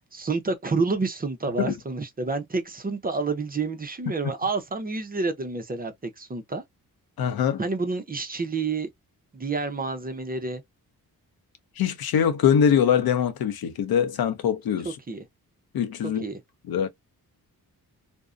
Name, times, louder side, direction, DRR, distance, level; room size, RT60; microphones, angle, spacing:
voice 1, 0.1-6.6 7.6-8.9 9.3-10.6 15.1-15.2 16.2-16.4, right 4 dB, 25° right, 0.5 m, -29 dB
voice 2, 7.2-7.6 11.8-15.0 15.7-16.2 16.7-16.9, left 8 dB, 80° left, 0.6 m, -23 dB
2.5 x 2.0 x 2.4 m
wide cardioid pair, 125°, 37 cm